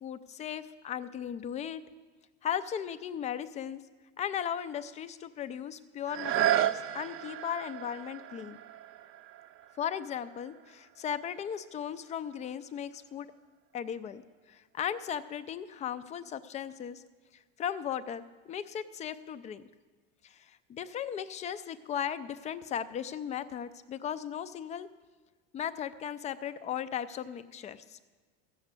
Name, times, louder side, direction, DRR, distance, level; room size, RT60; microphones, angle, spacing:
voice 1, 0.0-1.8 2.4-3.8 4.2-8.6 9.8-13.3 13.7-14.2 14.5-17.0 17.6-19.6 20.2-24.9 25.5-28.0, left 9 dB, 25° left, 13 dB, 0.4 m, -37 dB
sound 1, 6.0-11.7 12.3-12.4, right 11 dB, 45° right, 0.6 m, -34 dB
15.0 x 6.7 x 8.1 m, 1.3 s
cardioid pair, 150°, 31 cm